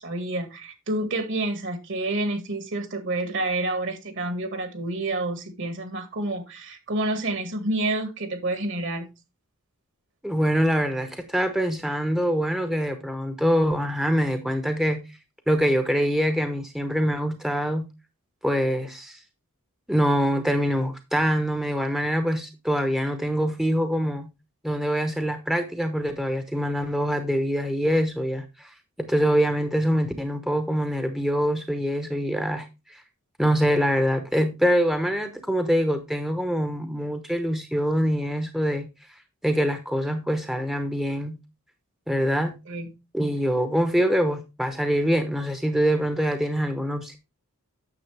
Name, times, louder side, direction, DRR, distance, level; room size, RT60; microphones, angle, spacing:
voice 1, 0.0-9.1 42.7-42.9, right 2 dB, 55° right, 1.9 m, -29 dB
voice 2, 10.2-15.2 15.5-17.9 18.4-19.2 19.9-24.3 24.6-33.0 33.4-38.9 39.4-41.4 42.1-42.5 43.1-47.2, equal, ahead, 0.8 m, -24 dB
9.5 x 6.8 x 3.3 m
head